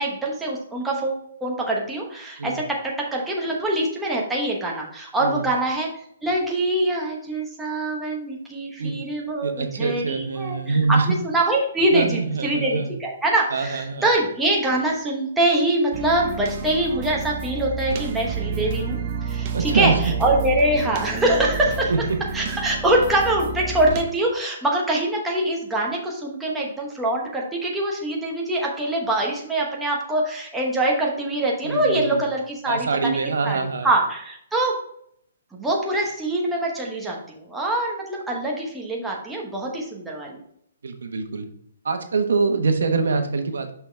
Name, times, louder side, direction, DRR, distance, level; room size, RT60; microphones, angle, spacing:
voice 1, 0.0-5.9 6.2-19.0 19.2-19.9 20.2-21.9 22.3-33.2 33.4-33.6 33.8-34.7 35.5-40.4, right 1 dB, 5° right, -3 dB, 1.0 m, -24 dB
voice 2, 9.4-11.2 11.9-12.9 13.5-14.1 19.5-20.0 20.7-20.8 21.9-22.0 31.6-32.2 32.7-33.9 40.8-41.5 41.8-43.8, right 4 dB, 85° right, 6 dB, 1.1 m, -24 dB
sound 1, 15.9-24.0, right 5 dB, 30° right, 0.7 m, -30 dB
5.8 x 5.8 x 3.3 m, 0.67 s
hypercardioid pair, 170°, 0 cm